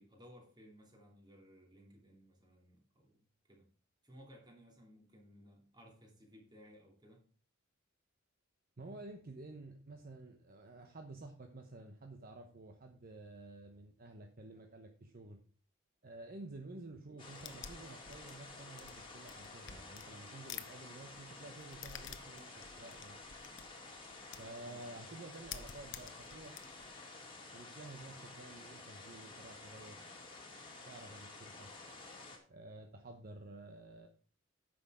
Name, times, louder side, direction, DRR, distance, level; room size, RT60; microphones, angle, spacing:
voice 1, 0.0-3.7 4.0-7.2 24.6-24.9, equal, 20° right, 0 dB, 2.7 m, -60 dB
voice 2, 8.8-15.4 16.0-23.2 24.4-26.6 27.5-30.0 30.9-31.7 32.5-34.1, right 2 dB, 45° right, 4 dB, 0.9 m, -51 dB
sound 1, 17.2-32.4, left 3 dB, 25° left, 2.2 m, -52 dB
sound 2, 17.3-20.7 21.0-24.6 25.0-25.1 25.3-26.9, left 9 dB, 60° left, 0.8 m, -50 dB
9.5 x 6.3 x 4.9 m, 0.41 s
head